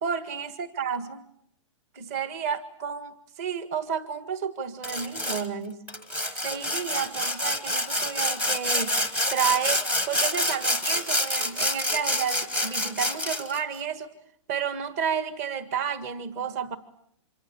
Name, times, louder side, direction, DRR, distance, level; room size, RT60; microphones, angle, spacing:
voice 1, 0.0-1.2 1.9-5.9 6.4-9.0 9.3-14.1 14.5-16.8, right 7 dB, 30° right, 12 dB, 1.7 m, -31 dB
Sawing, 4.8-5.5 5.9-13.6, left 1 dB, 10° right, 1.2 m, -27 dB
26.5 x 23.0 x 8.7 m, 0.69 s
hypercardioid pair, 170°, 16 cm